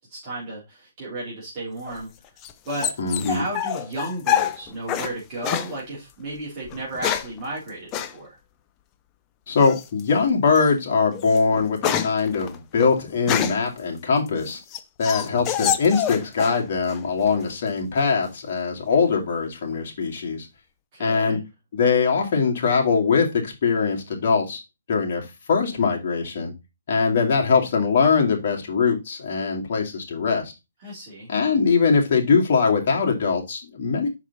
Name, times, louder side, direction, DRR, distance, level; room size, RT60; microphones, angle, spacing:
voice 1, 0.1-2.1 2.7-3.0 3.2-8.3 20.9-21.4 30.8-31.3, right 2 dB, 30° right, 3.5 m, -33 dB
sound 1, 1.8-5.1 5.4-5.7 6.7-7.4 7.9-8.1 9.6-10.0 10.5-10.7 11.1-13.7 14.3-16.6 16.9-17.5, left 10 dB, 20° left, 0.5 m, -27 dB
voice 2, 3.0-3.4 9.5-14.6 15.0-20.5 21.0-21.4 21.7-24.6 24.9-26.5 26.9-30.5 31.3-34.1, left 5 dB, 45° left, 2.3 m, -22 dB
6.0 x 4.7 x 4.0 m
hypercardioid pair, 160°, 0 cm